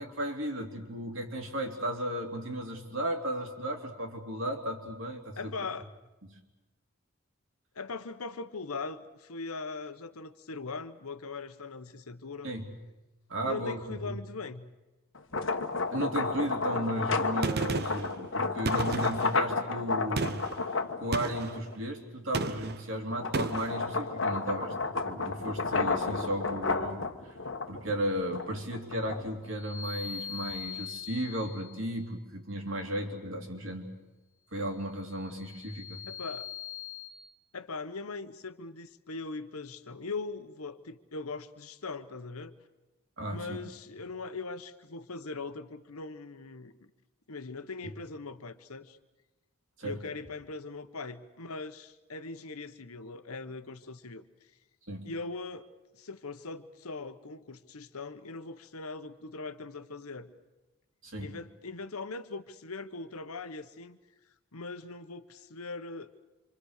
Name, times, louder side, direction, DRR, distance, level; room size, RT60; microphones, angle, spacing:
voice 1, 0.0-5.5 12.4-12.7 13.3-14.2 15.9-27.4 27.7-33.9 34.5-36.1 43.2-43.6 49.8-50.0 54.9-55.1 61.0-61.3, right 1 dB, 60° right, 3 dB, 3.0 m, -35 dB
voice 2, 5.4-5.9 7.7-12.5 13.4-14.7 36.1-36.5 37.5-42.5 43.3-46.9 47.3-49.0 49.8-54.2 55.0-55.7 56.0-60.3 61.2-64.0 64.5-66.1, left 3 dB, 85° left, 10 dB, 1.2 m, -40 dB
sound 1, 15.2-21.8 22.3-29.5, left 3 dB, 60° left, 1.4 m, -32 dB
Gunshot gunfire, 17.4-18.1 18.7-19.4 20.2-20.6 21.1-21.6 22.3-22.8 23.3-23.7, right 3 dB, 45° right, 0.8 m, -33 dB
sound 2, 29.5-32.0 35.0-37.1, left 8 dB, 15° left, 1.3 m, -42 dB
27.0 x 25.5 x 6.6 m, 1.1 s
head